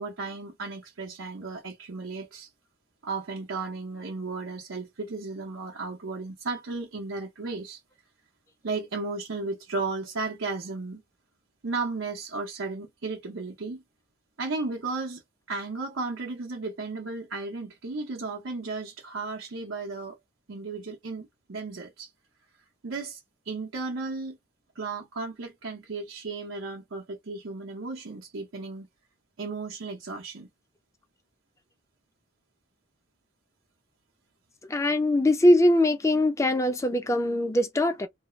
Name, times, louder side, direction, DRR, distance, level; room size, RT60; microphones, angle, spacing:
voice 1, 0.0-2.5 3.0-7.8 8.6-11.0 11.6-13.8 14.4-15.2 15.5-20.2 20.5-22.1 22.8-23.2 23.5-24.4 24.8-28.9 29.4-30.5, right 3 dB, 75° right, 0.7 m, -34 dB
voice 2, 34.6-38.1, left 1 dB, 15° left, 0.4 m, -22 dB
2.3 x 2.1 x 3.0 m
head